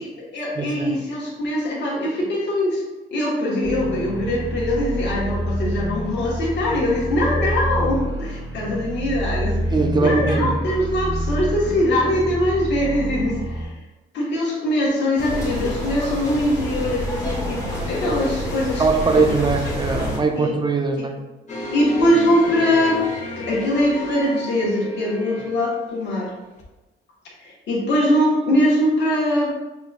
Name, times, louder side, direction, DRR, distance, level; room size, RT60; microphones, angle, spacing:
voice 1, 0.0-2.8 3.1-9.6 10.0-13.7 14.1-18.8 20.4-20.5 21.0-21.1 21.7-23.0 23.4-26.3 27.4-29.5, left 1 dB, 65° left, -5 dB, 1.3 m, -22 dB
voice 2, 0.6-1.0 9.7-10.5 18.8-21.1, right 4 dB, 20° right, 4 dB, 0.5 m, -21 dB
sound 1, 3.6-13.6, equal, 80° left, 1.1 m, -27 dB
sound 2, 15.2-20.2, left 1 dB, 15° left, 1.3 m, -28 dB
sound 3, 21.5-25.8 26.6-26.7, left 1 dB, 35° left, 1.0 m, -32 dB
5.9 x 2.6 x 2.4 m, 1.1 s
cardioid pair, 90°, 20 cm